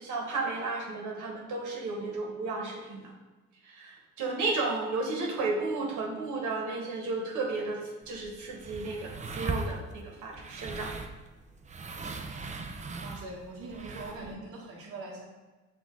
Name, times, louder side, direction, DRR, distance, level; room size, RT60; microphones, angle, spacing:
voice 1, 0.0-3.1 3.6-10.9 14.2-14.4, right 3 dB, 75° right, -1 dB, 1.0 m, -33 dB
sound 1, 8.0-14.3, right 3 dB, 25° right, 0.4 m, -39 dB
voice 2, 13.0-15.3, right 2 dB, 50° right, -1 dB, 0.9 m, -42 dB
5.5 x 2.4 x 3.6 m, 1.2 s
cardioid pair, 90°, 30 cm